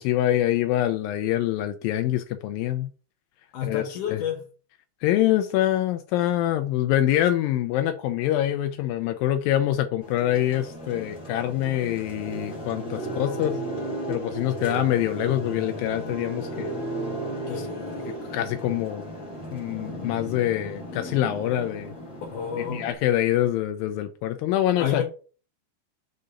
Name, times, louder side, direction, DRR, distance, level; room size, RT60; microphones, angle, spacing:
voice 1, 0.0-2.9 3.6-3.8 4.1-4.2 5.0-13.6 14.1-16.7 18.3-19.0 19.5-21.9 22.6-25.0, left 13 dB, 80° left, 2.1 m, -25 dB
voice 2, 3.5-4.5 13.1-13.6 17.5-18.2 22.3-22.9 24.8-25.0, left 8 dB, 65° left, 2.2 m, -31 dB
sound 1, 10.0-22.9, right 1 dB, 25° left, 2.0 m, -35 dB
6.8 x 3.9 x 5.0 m
omnidirectional pair, 4.5 m